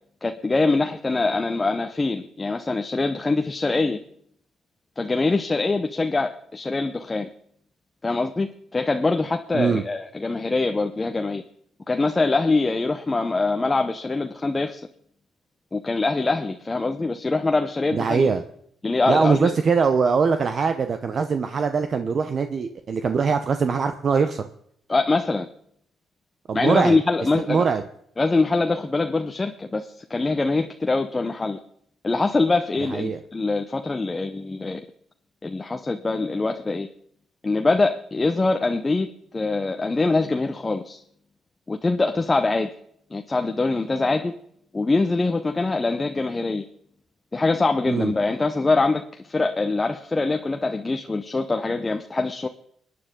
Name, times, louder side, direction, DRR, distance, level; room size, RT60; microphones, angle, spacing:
voice 1, 0.2-4.0 5.0-7.3 8.0-11.4 11.9-14.9 15.7-18.3 18.8-19.5 24.9-25.5 26.5-27.6 28.2-31.6 32.0-34.8 35.4-36.9 37.4-39.1 39.3-41.0 41.7-42.7 43.1-44.3 44.7-46.6 47.3-52.5, left 3 dB, 20° left, 6 dB, 0.8 m, -23 dB
voice 2, 17.9-18.4 19.1-24.5 26.5-27.0 27.5-27.8 32.9-33.2 47.9-48.1, right 5 dB, 50° right, 8 dB, 0.8 m, -22 dB
24.0 x 9.6 x 3.8 m, 0.69 s
cardioid pair, 90°, 0 cm